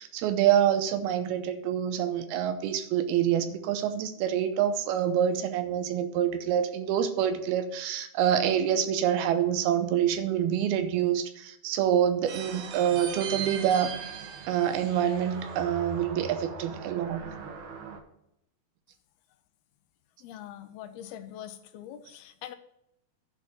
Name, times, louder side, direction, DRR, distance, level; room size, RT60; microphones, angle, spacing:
voice 1, 0.0-14.0 14.5-17.2, right 9 dB, 90° right, 9 dB, 2.7 m, -26 dB
sound 1, 12.3-18.0, right 6 dB, 65° right, 2.1 m, -39 dB
voice 2, 20.2-22.6, left 11 dB, 85° left, 8 dB, 2.6 m, -43 dB
11.0 x 4.6 x 8.0 m, 0.79 s
omnidirectional pair, 4.4 m